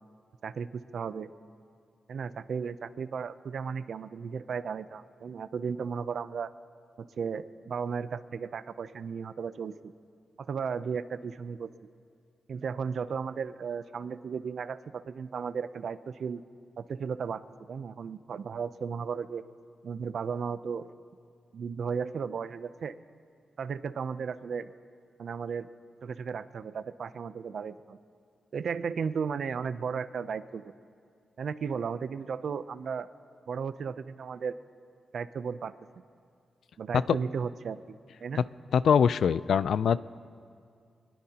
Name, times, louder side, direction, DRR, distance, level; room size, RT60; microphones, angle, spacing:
voice 1, 0.4-1.3 2.1-6.5 7.0-9.9 10.4-11.7 12.5-16.4 16.8-17.4 17.7-19.4 19.8-20.9 21.5-22.9 23.6-24.7 25.2-25.7 26.0-28.0 28.5-30.7 31.4-33.1 33.5-34.5 35.1-35.7 36.8-38.5, right 6 dB, 60° right, 14 dB, 0.5 m, -35 dB
voice 2, 38.7-40.0, left 7 dB, 75° left, 17 dB, 0.3 m, -23 dB
23.5 x 21.0 x 2.9 m, 2.3 s
wide cardioid pair, 130°, 0 cm